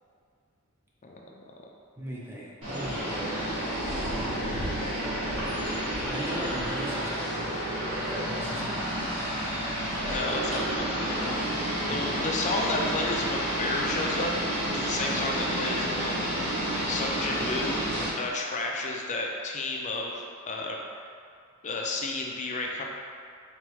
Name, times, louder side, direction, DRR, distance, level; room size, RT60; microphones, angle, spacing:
voice 1, 1.0-1.4 10.0-14.3 14.7-16.6 16.9-17.8 18.2-21.0 21.6-22.8, left 2 dB, 35° left, 0 dB, 0.5 m, -32 dB
voice 2, 2.0-3.4 6.0-7.5 8.1-8.9 11.9-12.0, right 1 dB, 10° right, -6 dB, 0.7 m, -39 dB
sound 1, 2.6-18.1, right 1 dB, 75° right, 1.4 m, -30 dB
4.1 x 3.5 x 3.0 m, 2.2 s
head